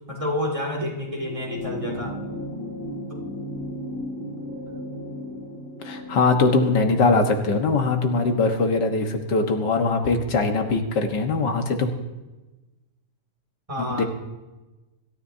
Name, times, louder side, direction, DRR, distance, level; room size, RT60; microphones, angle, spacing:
voice 1, 0.1-2.1 3.1-3.2 13.7-14.0, left 1 dB, 20° right, -1 dB, 2.5 m, -29 dB
sound 1, 1.2-9.9 11.1-11.2, left 1 dB, 30° left, 3.5 m, -36 dB
voice 2, 5.8-11.9 13.8-14.0, left 3 dB, 80° left, 4 dB, 2.0 m, -21 dB
25.0 x 13.5 x 2.8 m, 1.1 s
omnidirectional pair, 1.8 m